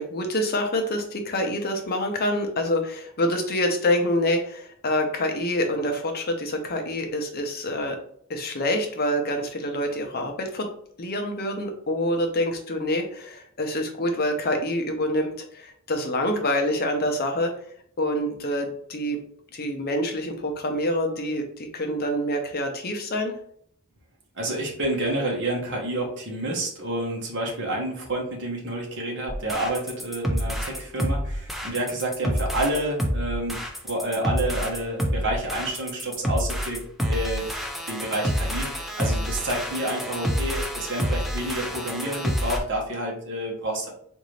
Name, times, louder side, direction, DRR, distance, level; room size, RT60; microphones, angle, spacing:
voice 1, 0.0-8.0 8.3-10.7 11.0-17.5 18.0-19.2 19.5-23.4, left 1 dB, 45° left, 4 dB, 0.7 m, -26 dB
voice 2, 24.3-33.6 33.8-37.5 37.9-43.9, right 1 dB, 55° right, -1 dB, 1.0 m, -29 dB
sound 1, 29.3-42.6, equal, ahead, 0.4 m, -28 dB
3.8 x 2.6 x 3.2 m, 0.63 s
head